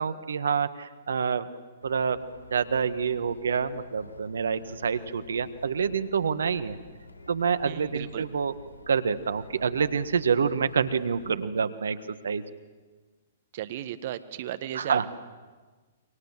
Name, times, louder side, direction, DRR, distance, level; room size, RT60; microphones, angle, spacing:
voice 1, 0.0-1.5 1.8-2.2 2.5-6.8 7.3-8.5 8.9-12.0 12.2-12.4 14.7-15.1, right 6 dB, 75° right, 13 dB, 1.6 m, -27 dB
sound 1, 1.8-11.4, left 2 dB, 85° left, 3.9 m, -49 dB
voice 2, 7.7-8.2 13.5-15.1, right 12 dB, 50° right, 11 dB, 1.7 m, -35 dB
29.0 x 24.5 x 7.5 m, 1.4 s
figure-of-eight pair, 120°, 0 cm